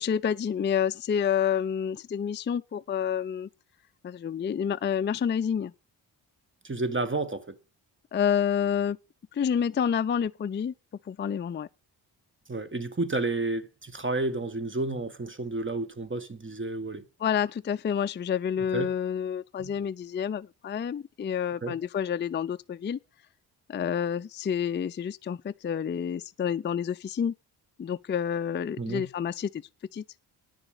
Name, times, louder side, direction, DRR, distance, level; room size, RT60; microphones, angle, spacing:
voice 1, 0.0-3.5 4.0-5.7 8.1-9.0 9.3-10.7 11.1-11.7 17.2-23.0 23.7-27.3 27.8-29.6 29.9-30.0, left 8 dB, 25° left, 0.4 m, -28 dB
voice 2, 6.6-7.6 12.5-17.0 18.7-18.9 19.6-19.7 21.6-21.8 28.8-29.1, right 2 dB, 25° right, 1.7 m, -31 dB
10.0 x 6.8 x 6.6 m
supercardioid pair, 50°, 46 cm